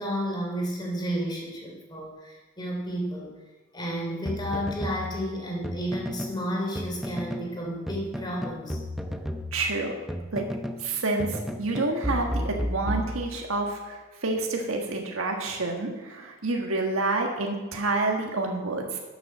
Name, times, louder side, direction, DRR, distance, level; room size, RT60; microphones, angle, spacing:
voice 1, 0.0-3.3 3.7-8.8, equal, 20° left, -1 dB, 3.0 m, -32 dB
sound 1, 4.2-6.4 6.7-7.5 7.9-10.9 11.2-13.6, equal, ahead, 0.7 m, -33 dB
voice 2, 9.5-9.9 10.3-10.4 10.8-19.0, right 2 dB, 90° right, 1 dB, 1.5 m, -28 dB
12.0 x 7.2 x 6.1 m, 1.2 s
head